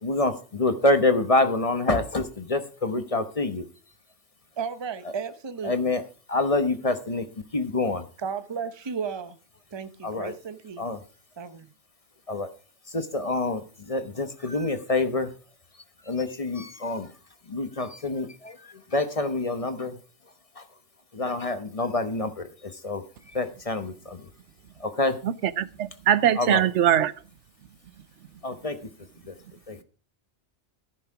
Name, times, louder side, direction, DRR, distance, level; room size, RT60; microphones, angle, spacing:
voice 1, 0.0-3.6 5.6-6.0 6.3-7.3 7.5-8.0 10.0-10.3 10.8-11.0 12.3-12.5 12.9-15.3 16.0-17.1 17.5-20.0 20.6-20.7 21.1-23.0 23.3-24.3 24.8-25.2 26.3-26.6 28.4-28.8 29.3-29.4 29.7-29.8, left 2 dB, 30° left, 1.0 m, -27 dB
voice 2, 4.6-5.9 8.2-9.4 9.7-10.9 11.4-11.7, right 6 dB, 25° right, 0.7 m, -34 dB
voice 3, 25.2-27.1, right 10 dB, 80° right, 1.0 m, -22 dB
15.0 x 6.6 x 4.8 m
omnidirectional pair, 1.2 m